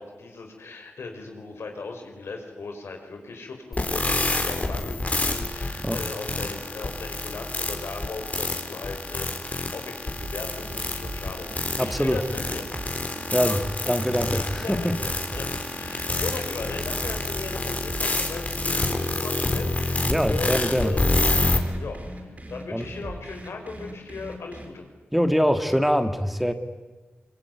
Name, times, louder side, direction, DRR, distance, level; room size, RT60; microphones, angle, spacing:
voice 1, 0.0-12.7 13.4-21.2 21.8-22.0 22.5-24.9, left 3 dB, 90° left, 3 dB, 5.3 m, -37 dB
sound 1, 3.7-21.6, left 2 dB, 35° left, 3.6 m, -28 dB
sound 2, 10.2-18.1 18.5-24.7, right 1 dB, 35° right, 6.3 m, -39 dB
voice 2, 11.8-12.2 13.3-13.6 13.9-14.9 20.0-20.9 22.7-22.9 25.1-26.5, equal, ahead, 8 dB, 2.0 m, -23 dB
24.5 x 24.0 x 9.5 m, 1.3 s
wide cardioid pair, 70°, 4 cm